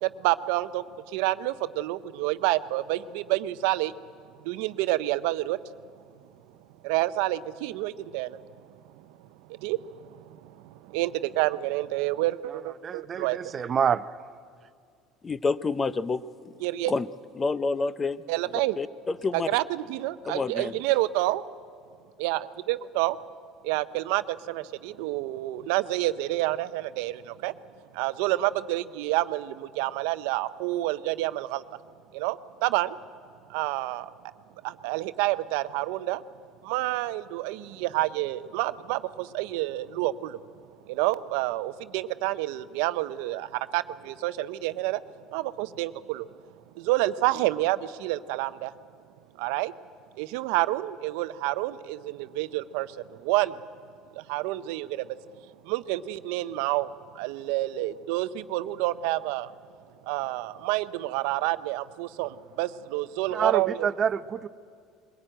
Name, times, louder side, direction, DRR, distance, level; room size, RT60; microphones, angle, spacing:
voice 1, 0.0-0.8 1.1-3.9 4.4-5.6 6.8-8.4 9.6-9.8 10.9-13.5 16.6-16.9 18.3-18.8 19.3-21.4 22.2-23.2 23.6-27.5 27.9-31.6 32.1-33.0 33.5-34.1 34.6-36.2 36.6-40.4 40.9-45.0 45.3-46.3 46.8-48.7 49.4-49.7 50.2-53.6 54.2-55.1 55.7-59.5 60.1-63.9, right 17 dB, 80° right, 14 dB, 0.6 m, -28 dB
voice 2, 12.8-14.0 63.3-64.5, right 7 dB, 35° right, 15 dB, 0.6 m, -27 dB
voice 3, 15.2-16.5 16.9-17.1 17.4-18.2 18.8-19.5 20.3-20.7, left 4 dB, 25° left, 16 dB, 0.6 m, -28 dB
21.5 x 17.0 x 8.9 m, 2.2 s
supercardioid pair, 105°, 0 cm